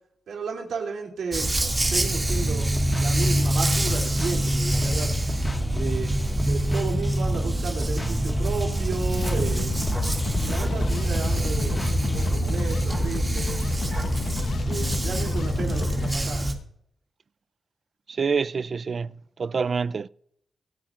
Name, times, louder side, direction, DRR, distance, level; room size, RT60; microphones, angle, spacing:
voice 1, 0.3-1.5 1.9-5.1 5.7-6.2 6.4-9.9 10.4-13.5 14.6-16.5, right 5 dB, 85° right, 2.7 m, -33 dB
Dog, 1.3-16.5, right 1 dB, 25° right, 2.1 m, -25 dB
sound 1, 2.3-12.4, left 2 dB, 25° left, 1.6 m, -33 dB
sound 2, 9.1-16.1, left 5 dB, 65° left, 0.8 m, -32 dB
voice 2, 18.1-20.1, right 5 dB, 50° right, 0.4 m, -27 dB
25.0 x 8.6 x 2.5 m
cardioid pair, 85°, 0 cm